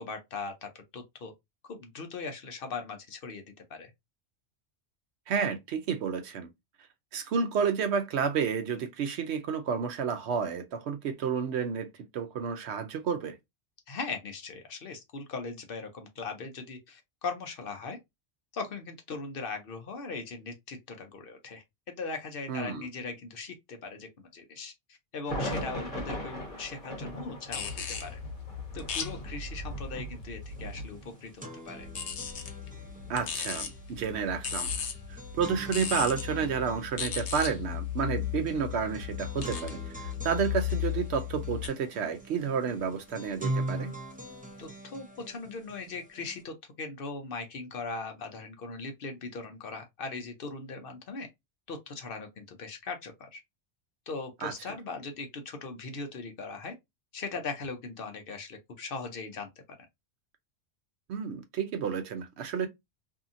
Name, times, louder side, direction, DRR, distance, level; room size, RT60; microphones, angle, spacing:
voice 1, 0.0-1.3 1.7-3.4 3.7-3.9 13.9-18.0 18.5-21.6 22.0-24.7 25.1-28.2 28.7-31.9 44.6-51.3 51.7-53.4 54.1-56.7 57.1-59.5, left 4 dB, 60° left, 0.8 m, -39 dB
voice 2, 5.3-6.5 7.1-13.4 22.5-22.9 33.1-34.7 35.3-43.9 54.4-54.7 61.1-62.7, right 6 dB, 75° right, 0.9 m, -31 dB
sound 1, 25.2-40.4 40.8-40.9 42.2-44.7, equal, 35° left, 1.2 m, -43 dB
sound 2, 27.5-31.0 31.8-41.7, left 8 dB, 85° left, 1.0 m, -36 dB
sound 3, 30.5-30.6 30.9-46.4, right 1 dB, 10° right, 0.5 m, -42 dB
2.7 x 2.6 x 2.4 m
omnidirectional pair, 1.1 m